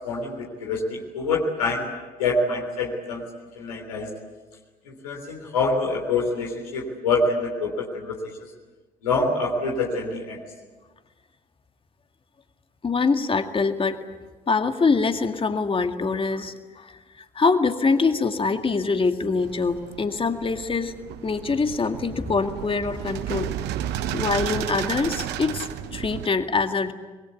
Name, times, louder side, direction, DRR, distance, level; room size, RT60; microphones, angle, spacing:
voice 1, 0.0-1.9 2.2-3.2 3.5-4.1 4.8-8.1 9.0-10.4, left 3 dB, 80° left, 0 dB, 3.4 m, -26 dB
voice 2, 12.8-14.0 14.5-16.9 17.4-20.9 21.2-23.5 24.1-26.9, left 4 dB, 30° left, 7 dB, 2.0 m, -24 dB
sound 1, 19.4-26.3, right 11 dB, 60° right, 1.0 m, -32 dB
25.0 x 21.5 x 8.4 m, 1.3 s
figure-of-eight pair, 50°, 19 cm